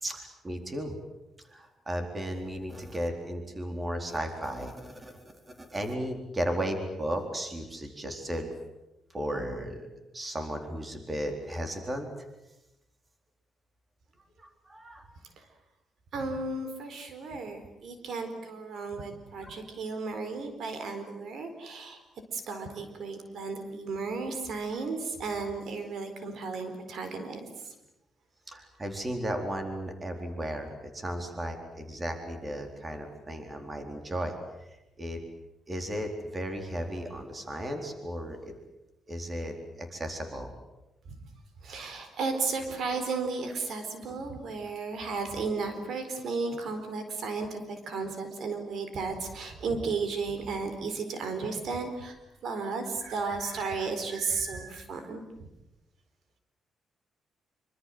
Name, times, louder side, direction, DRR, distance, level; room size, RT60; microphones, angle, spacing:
voice 1, 0.0-0.9 1.5-8.5 9.1-9.9 10.1-12.1 14.4-15.1 19.4-19.6 28.5-34.4 35.0-35.2 35.7-38.5 39.1-40.5, equal, 25° right, 5 dB, 4.2 m, -35 dB
voice 2, 16.1-22.0 22.3-27.4 41.6-52.2 52.4-55.2, right 4 dB, 65° right, 7 dB, 4.3 m, -34 dB
26.0 x 25.5 x 7.9 m, 0.94 s
cardioid pair, 120°, 0 cm